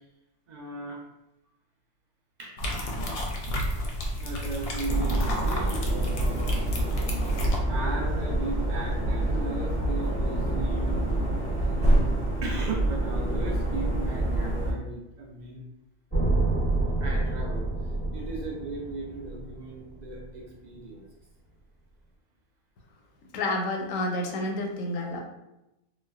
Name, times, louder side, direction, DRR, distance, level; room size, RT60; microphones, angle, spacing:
voice 1, 0.5-1.0 2.4-2.5 4.2-6.6 7.7-11.3 12.4-15.6 17.0-17.7 18.1-21.0, right 2 dB, 70° right, -1 dB, 0.4 m, -37 dB
sound 1, 2.6-7.6, equal, 60° left, 0.7 m, -31 dB
sound 2, 4.9-14.7, right 1 dB, 20° right, 0.8 m, -27 dB
sound 3, 16.1-20.2, right 2 dB, 10° left, 0.6 m, -28 dB
voice 2, 23.3-25.2, left 1 dB, 80° left, 1 dB, 1.0 m, -29 dB
4.0 x 2.0 x 2.4 m, 0.91 s
omnidirectional pair, 1.4 m